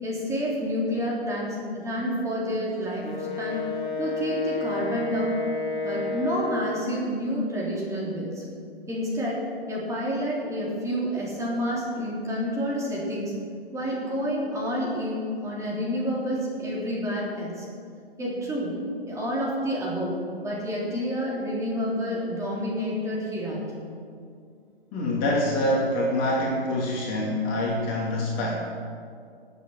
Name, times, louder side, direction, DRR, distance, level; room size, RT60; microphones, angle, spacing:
voice 1, 0.0-3.6 4.0-5.4 5.8-8.4 8.9-9.4 9.7-13.3 13.7-17.7 18.2-18.7 19.1-23.8, equal, 10° right, -5 dB, 3.6 m, -29 dB
Wind instrument woodwind instrument, 3.0-7.0, left 4 dB, 15° left, 2.0 m, -30 dB
voice 2, 24.9-28.6, left 1 dB, 30° left, -3 dB, 2.6 m, -25 dB
20.5 x 8.1 x 6.4 m, 2.3 s
hypercardioid pair, 130°, 31 cm